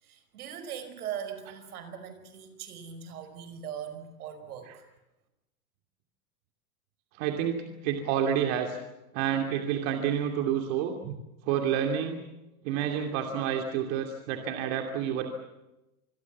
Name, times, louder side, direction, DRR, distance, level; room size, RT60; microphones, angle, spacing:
voice 1, 0.0-4.9, right 8 dB, 75° right, 10 dB, 5.2 m, -40 dB
voice 2, 7.1-8.8 9.1-11.2 11.4-12.2 12.6-15.3, right 9 dB, 50° right, 4 dB, 2.8 m, -29 dB
27.0 x 22.0 x 7.4 m, 0.95 s
supercardioid pair, 135°, 44 cm